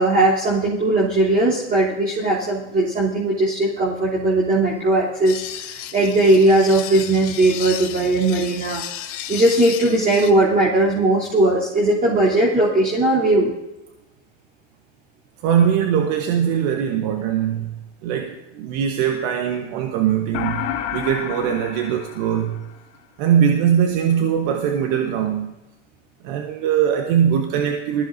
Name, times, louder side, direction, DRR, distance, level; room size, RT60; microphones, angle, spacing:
voice 1, 0.0-8.8 9.3-13.5, right 2 dB, 25° right, -5 dB, 3.2 m, -18 dB
sound 1, 5.2-10.3, left 11 dB, 55° left, 1.7 m, -33 dB
voice 2, 15.4-22.7 23.2-25.5 26.2-28.1, right 8 dB, 60° right, 4 dB, 1.3 m, -21 dB
sound 2, 20.3-23.0, left 10 dB, 75° left, 1.8 m, -30 dB
20.0 x 15.0 x 2.7 m, 0.97 s
hypercardioid pair, 100°, 36 cm